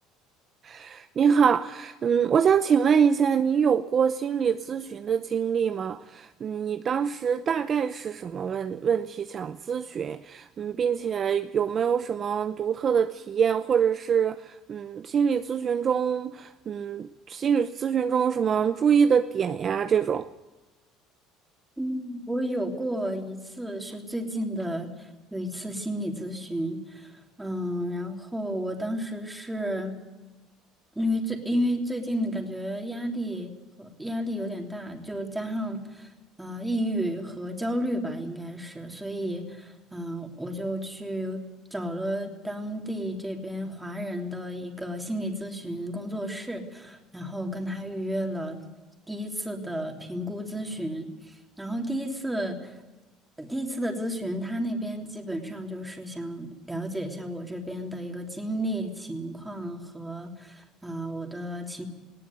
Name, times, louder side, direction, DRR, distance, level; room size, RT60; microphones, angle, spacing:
voice 1, 0.6-20.3, right 7 dB, 35° right, 0.7 m, -25 dB
voice 2, 21.8-27.1 27.4-29.9 30.9-33.5 33.8-36.1 36.4-41.4 41.7-48.6 49.1-52.8 53.4-61.8, equal, 5° right, 3.2 m, -32 dB
19.5 x 18.0 x 9.7 m
cardioid pair, 140°, 0 cm